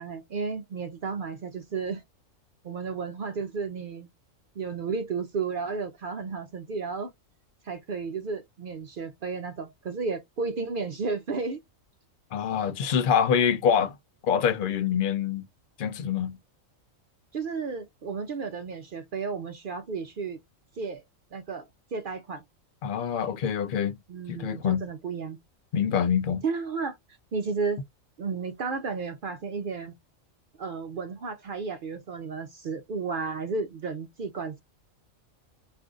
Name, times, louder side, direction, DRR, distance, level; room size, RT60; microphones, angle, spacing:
voice 1, 0.0-2.0 2.6-4.1 4.6-7.1 7.6-11.6 17.3-20.4 20.8-21.0 21.3-21.6 21.9-22.4 24.1-25.4 26.4-27.0 27.3-27.8 28.2-30.0 30.6-34.6, right 4 dB, 65° right, 0.5 m, -33 dB
voice 2, 12.3-13.9 14.2-15.4 15.8-16.4 22.8-24.0 24.3-24.9 25.7-26.4, left 8 dB, 65° left, 0.5 m, -25 dB
2.6 x 2.5 x 3.6 m
omnidirectional pair, 1.4 m